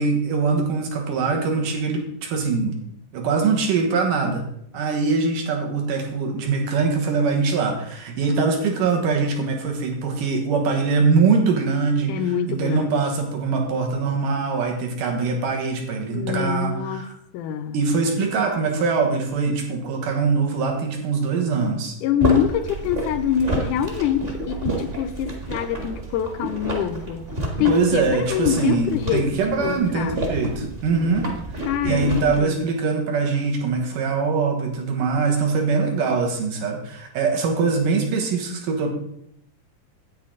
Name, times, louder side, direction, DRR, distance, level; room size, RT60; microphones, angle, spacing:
voice 1, 0.0-2.8 3.1-4.4 4.7-12.1 12.5-17.1 17.7-22.0 27.7-31.3 31.5-38.9, right 4 dB, 80° right, 2 dB, 3.0 m, -22 dB
voice 2, 12.1-13.0 16.1-17.1 17.3-17.8 22.0-27.2 27.6-30.2 31.7-32.6, left 9 dB, 80° left, 9 dB, 2.1 m, -25 dB
sound 1, 22.2-32.4, right 1 dB, 30° right, 1.1 m, -30 dB
9.5 x 8.5 x 3.8 m, 0.72 s
omnidirectional pair, 3.8 m